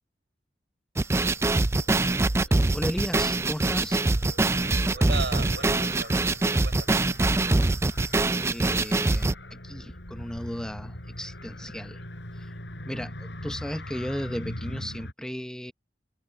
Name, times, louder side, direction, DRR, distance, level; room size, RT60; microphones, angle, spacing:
sound 1, 1.0-9.3, right 2 dB, 15° right, 0.4 m, -24 dB
Car, 1.2-15.1, left 1 dB, 80° left, 6.7 m, -42 dB
voice 1, 2.4-4.0 8.4-12.0 12.3-12.5 12.9-15.7, equal, 5° left, 0.9 m, -35 dB
voice 2, 4.9-7.0, right 4 dB, 75° right, 5.4 m, -36 dB
open air
head